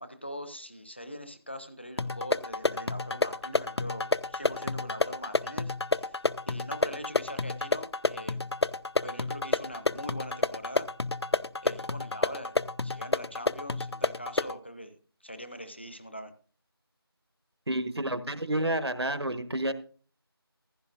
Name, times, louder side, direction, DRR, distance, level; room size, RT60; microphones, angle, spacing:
voice 1, 0.0-6.2 6.5-8.5 9.0-10.9 11.6-12.5 12.8-15.0 15.2-16.3, equal, 25° left, 10 dB, 0.8 m, -42 dB
sound 1, 2.0-14.6, left 3 dB, 90° left, 0.5 m, -30 dB
voice 2, 17.7-19.7, right 1 dB, 80° right, 11 dB, 1.2 m, -30 dB
15.0 x 11.5 x 2.5 m, 0.42 s
figure-of-eight pair, 175°, 13 cm